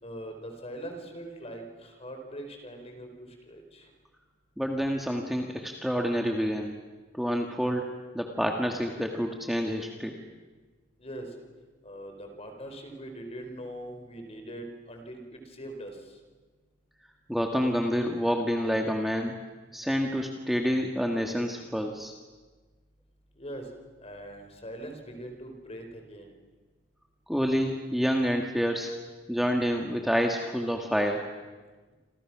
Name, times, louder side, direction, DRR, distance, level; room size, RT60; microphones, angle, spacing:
voice 1, 0.0-3.1 3.5-3.9 11.0-11.3 11.8-16.0 23.4-23.6 24.0-26.3, right 1 dB, 35° left, 5 dB, 4.4 m, -41 dB
voice 2, 4.6-6.8 7.1-10.1 17.3-19.4 19.7-22.1 27.3-28.9 29.3-31.3, equal, ahead, 2 dB, 1.6 m, -28 dB
28.0 x 26.5 x 6.1 m, 1.3 s
head